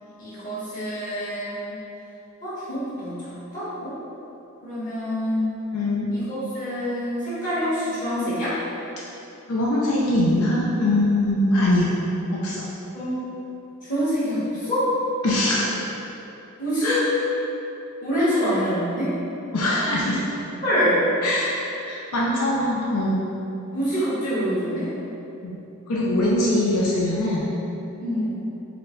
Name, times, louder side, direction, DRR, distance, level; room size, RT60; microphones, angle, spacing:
voice 1, 0.2-1.7 2.4-3.2 3.5-3.9 4.6-5.5 6.1-8.6 12.9-13.2 13.8-14.9 16.6-17.0 18.0-19.1 20.6-21.1 23.7-24.9 28.0-28.4, equal, 40° left, -11 dB, 1.5 m, -25 dB
voice 2, 5.7-6.1 9.5-11.9 12.3-12.6 15.2-15.7 16.8-17.0 18.2-18.3 19.5-20.2 21.2-23.2 25.4-25.6 25.9-27.5, left 1 dB, 85° left, -5 dB, 0.5 m, -22 dB
4.3 x 2.2 x 3.8 m, 3.0 s
head